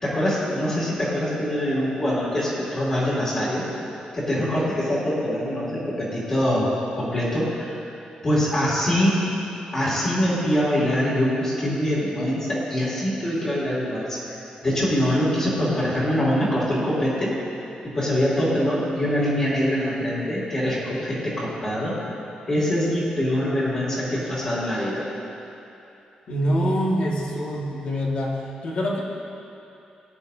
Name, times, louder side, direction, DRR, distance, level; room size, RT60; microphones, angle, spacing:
voice 1, 0.0-3.6 4.1-7.8 8.2-9.2 9.7-17.3 17.8-22.0 22.5-25.0, equal, 30° left, -9 dB, 2.6 m, -24 dB
voice 2, 26.3-29.0, equal, 55° left, -3 dB, 1.9 m, -25 dB
19.0 x 9.8 x 2.8 m, 2.8 s
wide cardioid pair, 175°, 2 cm